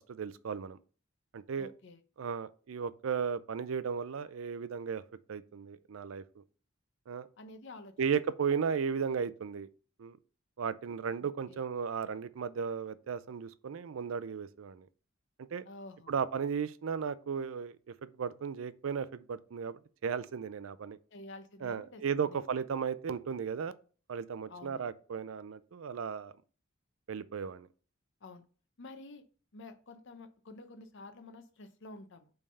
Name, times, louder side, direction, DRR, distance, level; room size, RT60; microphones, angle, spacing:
voice 1, 0.1-0.8 1.3-1.7 2.2-5.0 5.3-6.4 7.1-7.3 8.0-9.7 10.0-10.2 10.6-14.9 15.5-15.7 16.1-17.8 18.0-21.0 21.6-23.7 24.1-26.3 27.1-27.7, right 6 dB, 80° right, 0.4 m, -35 dB
voice 2, 1.6-2.0 7.4-7.9 11.5-11.6 15.7-16.2 21.1-22.4 24.5-24.9 28.2-28.4 28.8-29.2 29.5-32.3, left 2 dB, 65° left, 0.8 m, -50 dB
5.3 x 3.5 x 5.4 m
head